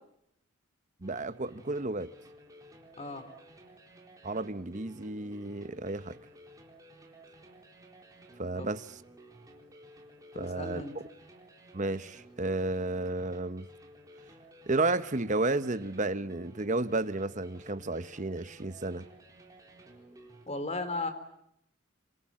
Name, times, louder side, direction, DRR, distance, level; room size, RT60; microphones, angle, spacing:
sound 1, 1.0-20.5, right 1 dB, 15° right, 4.1 m, -54 dB
voice 1, 1.0-2.1 4.2-6.2 8.4-9.0 10.3-10.8 11.7-13.7 14.7-19.1, right 2 dB, 35° right, 1.0 m, -32 dB
voice 2, 3.0-3.3 8.6-8.7 10.3-10.9 20.5-21.1, left 2 dB, 30° left, 3.8 m, -36 dB
27.5 x 26.5 x 7.7 m
head